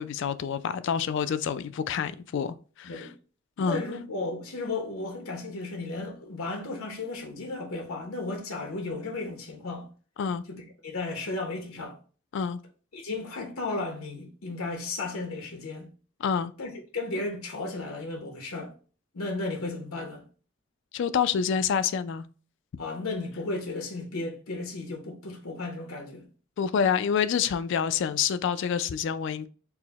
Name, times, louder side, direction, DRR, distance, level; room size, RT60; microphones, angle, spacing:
voice 1, 0.0-3.1 3.6-3.8 10.2-10.4 12.3-12.6 16.2-16.5 20.9-22.3 26.6-29.5, left 7 dB, 60° left, 0.3 m, -27 dB
voice 2, 3.6-9.9 10.5-12.0 12.9-15.9 16.6-18.7 19.1-20.2 22.8-26.3, left 2 dB, 85° left, 0.9 m, -34 dB
4.6 x 2.1 x 3.9 m
head